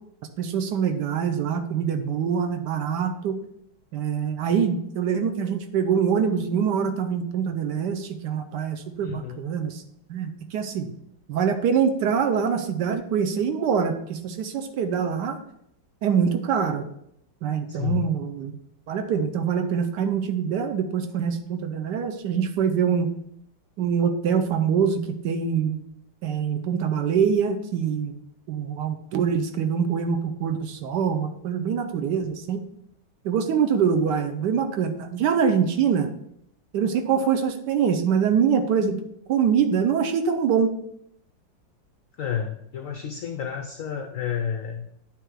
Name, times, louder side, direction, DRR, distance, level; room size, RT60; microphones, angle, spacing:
voice 1, 0.4-3.4 3.9-9.8 10.1-10.9 11.3-15.4 16.0-16.8 17.4-18.5 18.9-23.1 23.8-25.8 26.2-28.2 28.5-32.6 33.2-36.1 36.7-39.0 39.3-40.7, right 7 dB, 70° right, 7 dB, 1.2 m, -24 dB
voice 2, 9.0-9.4 17.7-18.1 42.2-44.9, left 8 dB, 80° left, 6 dB, 0.7 m, -30 dB
9.0 x 3.5 x 4.7 m, 0.75 s
omnidirectional pair, 2.0 m